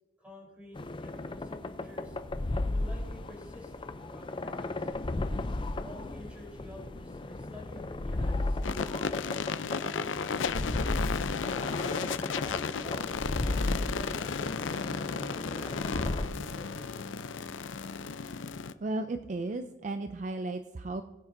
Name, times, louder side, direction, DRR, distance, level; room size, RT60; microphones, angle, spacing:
voice 1, 0.2-2.2 2.7-4.9 5.8-9.3 12.3-13.2 13.5-17.0, left 1 dB, 5° right, -2 dB, 3.6 m, -50 dB
sound 1, 0.7-16.3, left 2 dB, 25° left, 0.5 m, -35 dB
sound 2, 8.6-18.7, left 5 dB, 85° left, 0.5 m, -34 dB
voice 2, 18.8-21.0, right 2 dB, 40° right, 8 dB, 0.4 m, -34 dB
20.0 x 8.4 x 2.6 m, 1.3 s
head